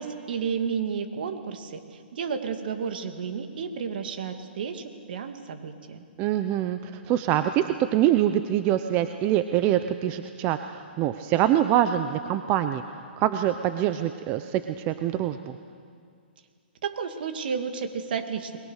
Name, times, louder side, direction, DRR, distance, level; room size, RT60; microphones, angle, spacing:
voice 1, 0.0-6.0 16.8-18.6, right 6 dB, 60° right, 6 dB, 2.5 m, -32 dB
voice 2, 6.2-12.8 13.2-15.4, right 12 dB, 25° right, 9 dB, 0.7 m, -24 dB
29.5 x 21.5 x 6.5 m, 2.2 s
hypercardioid pair, 155°, 6 cm